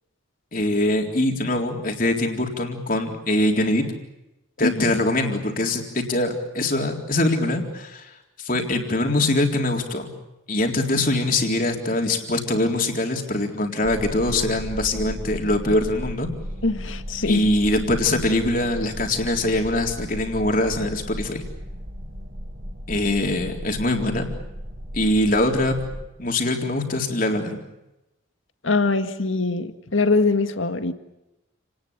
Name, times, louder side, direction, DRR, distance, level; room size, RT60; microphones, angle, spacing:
voice 1, 0.5-3.8 4.6-8.1 8.4-10.1 10.5-16.3 17.3-21.4 22.9-24.3 24.9-25.8 26.2-27.6, left 1 dB, 45° left, 3 dB, 3.9 m, -23 dB
voice 2, 4.6-5.0 16.6-17.5 28.6-30.9, left 3 dB, 80° left, 9 dB, 1.9 m, -23 dB
sound 1, 13.8-26.1, equal, 45° right, 4.3 m, -35 dB
29.5 x 19.5 x 8.9 m, 0.94 s
head